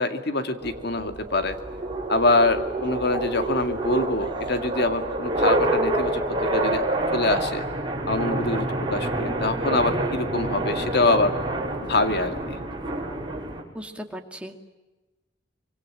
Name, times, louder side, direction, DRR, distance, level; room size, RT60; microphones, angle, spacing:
voice 1, 0.0-1.6 2.1-7.7 8.1-11.3 11.8-12.6, left 2 dB, 60° left, 8 dB, 2.3 m, -25 dB
sound 1, 0.6-13.6, right 1 dB, 25° right, 5.2 m, -27 dB
voice 2, 13.7-14.6, equal, 5° right, 3 dB, 2.3 m, -37 dB
25.5 x 24.0 x 9.1 m, 1.2 s
head